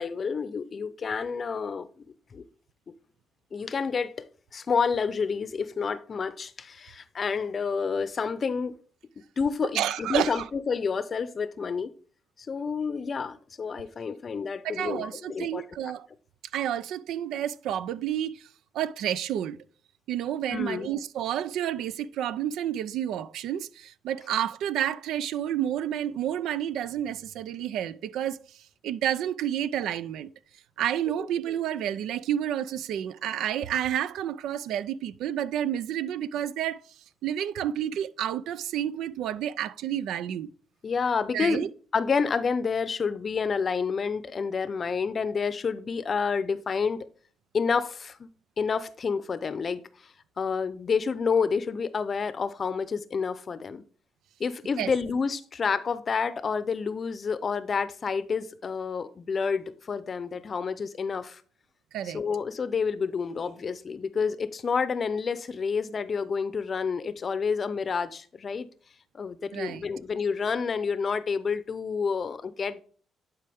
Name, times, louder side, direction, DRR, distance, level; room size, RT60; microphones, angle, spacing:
voice 1, 0.0-2.0 2.3-2.5 3.5-8.7 9.4-11.9 12.5-15.6 20.5-20.9 31.2-31.3 40.8-41.7 41.9-47.0 47.5-48.3 48.6-49.8 50.4-53.8 54.4-61.4 62.0-68.7 69.1-72.8, left 5 dB, 45° left, 0.6 m, -29 dB
voice 2, 9.7-10.4 14.6-16.1 16.5-18.5 18.7-19.6 20.1-30.3 30.8-36.8 37.2-40.5 41.3-41.7 54.8-54.9 61.9-62.2 69.5-69.9, right 10 dB, 85° right, 0.4 m, -30 dB
10.5 x 4.5 x 3.5 m
cardioid pair, 90°, 0 cm